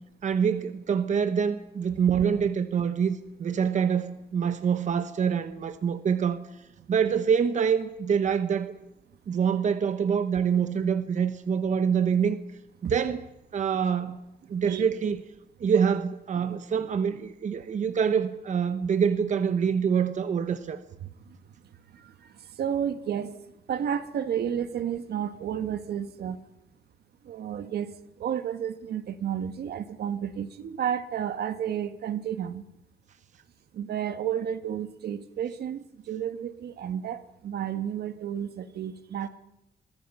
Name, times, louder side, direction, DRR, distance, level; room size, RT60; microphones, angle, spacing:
voice 1, 0.2-6.4 6.9-8.7 9.3-12.4 12.8-13.2 13.5-14.2 14.5-15.2 15.6-20.8, right 7 dB, 45° right, 1.1 m, -25 dB
voice 2, 21.0-21.4 21.6-23.4 23.7-26.4 27.2-32.6 33.7-39.3, right 9 dB, 75° right, 1.6 m, -32 dB
29.5 x 23.5 x 5.6 m
wide cardioid pair, 170°, 17 cm